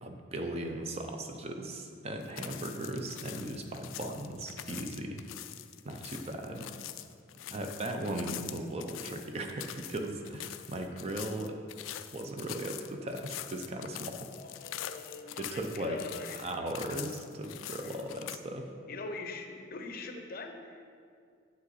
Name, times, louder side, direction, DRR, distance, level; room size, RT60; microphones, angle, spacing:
voice 1, 0.0-5.2 5.8-6.7 7.5-11.6 12.1-14.3 15.4-16.0 16.4-18.7, right 1 dB, 30° right, 4 dB, 0.5 m, -37 dB
sound 1, 2.2-18.4, left 12 dB, 85° left, 0.3 m, -44 dB
voice 2, 14.3-16.5 17.8-18.0 18.9-20.8, left 3 dB, 50° left, 5 dB, 0.6 m, -43 dB
7.8 x 5.5 x 4.0 m, 2.3 s
head